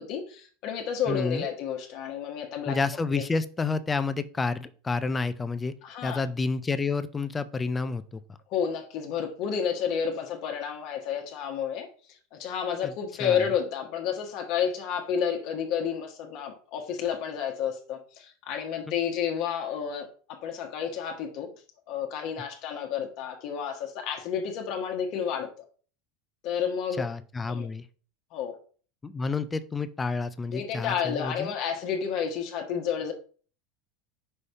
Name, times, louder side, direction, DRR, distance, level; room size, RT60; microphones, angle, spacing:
voice 1, 0.0-2.7 5.8-6.2 8.5-11.9 12.3-21.5 21.9-25.5 26.4-27.0 27.5-27.7 28.3-28.6 30.5-33.1, left 7 dB, 50° left, 1.1 m, -30 dB
voice 2, 1.1-1.4 2.7-5.7 6.0-8.2 12.8-12.9 13.2-13.5 27.0-27.9 29.0-31.5, left 4 dB, 15° left, 0.4 m, -29 dB
5.5 x 3.3 x 5.4 m
supercardioid pair, 150°, 0 cm